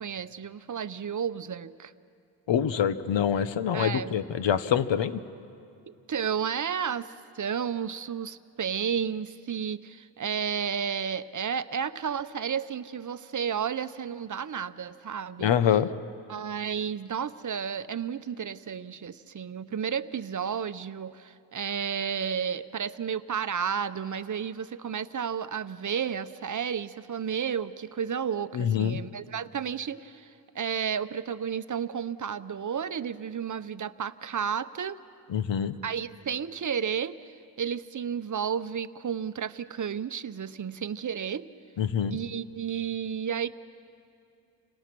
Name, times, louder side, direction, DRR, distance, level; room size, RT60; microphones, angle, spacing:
voice 1, 0.0-1.9 3.7-4.1 5.9-15.5 16.3-35.0 35.8-41.5 42.1-43.5, right 7 dB, 45° right, 12 dB, 0.7 m, -32 dB
voice 2, 2.5-5.2 15.4-15.9 28.5-29.0 35.3-35.7 41.8-42.2, left 9 dB, 80° left, 13 dB, 1.0 m, -25 dB
30.0 x 26.5 x 6.1 m, 2.5 s
cardioid pair, 90°, 44 cm